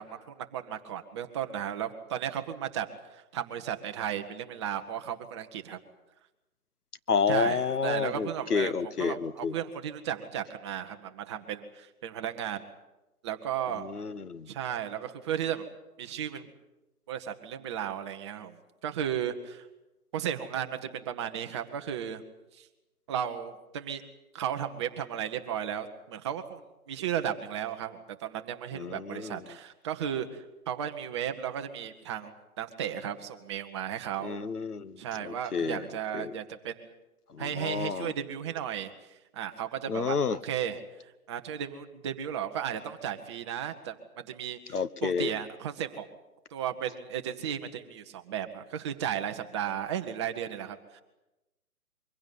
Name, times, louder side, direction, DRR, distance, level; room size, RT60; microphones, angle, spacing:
voice 1, 0.0-5.8 7.3-12.6 13.2-13.8 14.5-15.7 16.0-16.5 17.1-18.6 18.8-19.7 20.1-22.2 22.5-22.7 23.1-24.0 24.3-26.6 26.9-34.4 35.0-36.9 37.4-46.1 46.5-51.0, right 9 dB, 20° right, 6 dB, 1.0 m, -35 dB
voice 2, 7.1-9.5 13.8-14.5 28.7-29.4 34.2-35.8 36.1-36.3 37.3-38.1 39.9-40.4 44.7-45.3, left 5 dB, 85° left, 15 dB, 1.3 m, -30 dB
23.5 x 16.0 x 9.3 m, 1.0 s
hypercardioid pair, 150°, 45 cm